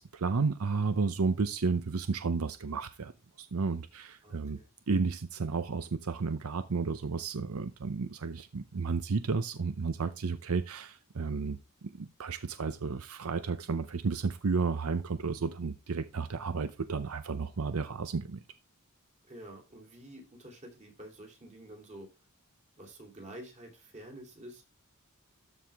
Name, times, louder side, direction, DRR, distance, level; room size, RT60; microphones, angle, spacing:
voice 1, 0.0-3.1 3.4-4.6 4.9-18.4, right 4 dB, 85° right, 0.7 m, -32 dB
voice 2, 4.2-4.7 19.3-22.1 22.8-24.6, right 1 dB, 35° right, 3.2 m, -49 dB
13.0 x 4.8 x 3.5 m
head